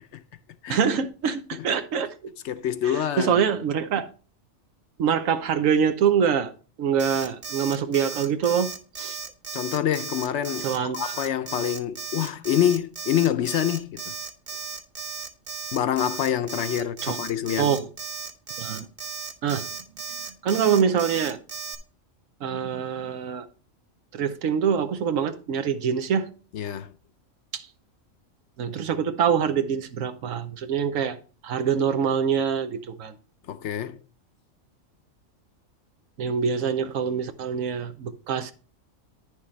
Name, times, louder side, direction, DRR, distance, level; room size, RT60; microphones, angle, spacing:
voice 1, 0.7-2.3 3.2-4.1 5.0-6.5 6.8-8.7 9.0-9.2 10.6-11.1 17.0-17.2 17.6-17.9 18.6-18.8 19.4-19.7 20.4-21.4 22.4-23.5 24.1-26.3 27.5-27.7 28.6-31.2 31.4-33.1 36.2-38.5, right 7 dB, 80° right, 1.2 m, -25 dB
voice 2, 2.4-3.4 9.5-14.0 15.7-17.7 26.5-26.9 33.5-34.0, left 10 dB, 65° left, 0.8 m, -26 dB
Alarm, 7.0-21.8, right 5 dB, 40° right, 0.9 m, -35 dB
10.0 x 6.5 x 3.2 m
omnidirectional pair, 1.4 m